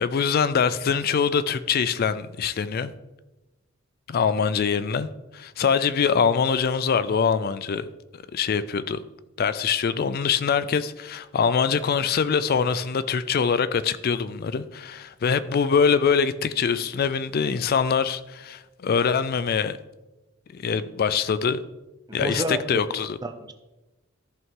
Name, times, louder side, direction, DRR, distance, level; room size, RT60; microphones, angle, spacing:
voice 1, 0.0-2.9 4.1-7.9 8.3-9.0 9.4-19.8 20.5-21.6 22.1-23.2, left 6 dB, 45° left, 0.4 m, -24 dB
voice 2, 22.1-22.8 23.2-23.5, right 1 dB, 20° right, 0.7 m, -29 dB
14.0 x 5.5 x 3.7 m
head